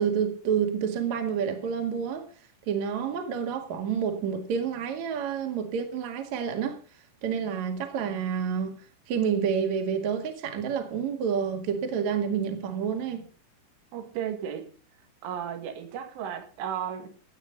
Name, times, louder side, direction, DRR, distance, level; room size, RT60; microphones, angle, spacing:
voice 1, 0.0-2.3 2.7-6.8 7.2-8.8 9.1-13.2, right 7 dB, 50° right, 2.5 m, -29 dB
voice 2, 13.9-14.7 15.2-17.1, right 9 dB, 90° right, 4.4 m, -34 dB
16.0 x 8.9 x 5.3 m
omnidirectional pair, 5.6 m